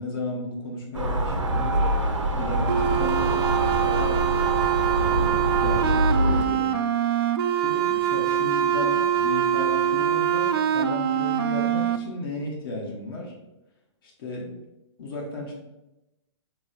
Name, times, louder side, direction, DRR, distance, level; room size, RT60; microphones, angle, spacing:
voice 1, 0.0-1.9 2.3-4.2 5.0-6.7 7.6-13.3 14.0-14.6 15.0-15.5, left 1 dB, 50° left, -2 dB, 1.1 m, -34 dB
sound 1, 0.9-6.4, right 1 dB, 75° right, 0.8 m, -25 dB
sound 2, 2.7-12.0, right 10 dB, 50° right, 0.4 m, -24 dB
4.0 x 3.1 x 3.9 m, 0.94 s
figure-of-eight pair, 120°, 16 cm